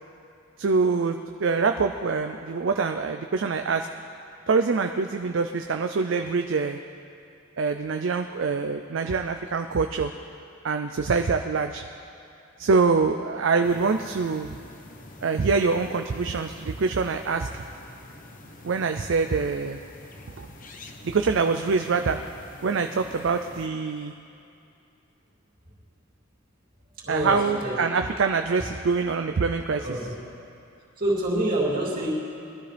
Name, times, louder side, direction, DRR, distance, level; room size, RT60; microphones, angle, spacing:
voice 1, 0.6-3.9 4.5-6.8 7.6-10.1 10.6-11.8 12.6-14.5 15.2-17.5 18.6-19.8 20.4-20.5 21.0-22.2 22.6-24.1 27.1-30.0, right 4 dB, 60° right, 6 dB, 0.4 m, -25 dB
sound 1, 13.6-23.7, left 2 dB, 40° left, 0.9 m, -47 dB
voice 2, 27.0-27.8 29.8-30.1 31.0-32.1, right 1 dB, 40° right, -5 dB, 2.9 m, -27 dB
21.0 x 13.0 x 3.4 m, 2.6 s
head